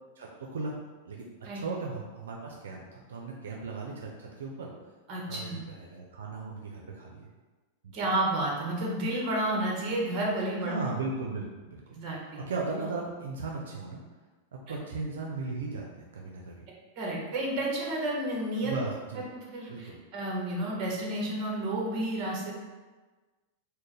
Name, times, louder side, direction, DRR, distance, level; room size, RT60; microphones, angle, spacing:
voice 1, 0.2-0.7 1.1-1.3 1.5-4.7 5.3-7.3 7.8-7.9 10.6-11.8 12.5-14.0 14.7-16.6 18.6-19.2 19.7-20.0, right 3 dB, 90° right, -1 dB, 0.5 m, -36 dB
voice 2, 5.1-5.6 7.9-10.7 11.9-12.4 14.7-14.8 17.0-18.7 19.5-22.5, right 1 dB, 40° right, -2 dB, 1.2 m, -31 dB
4.3 x 2.1 x 3.3 m, 1.3 s
hypercardioid pair, 130°, 0 cm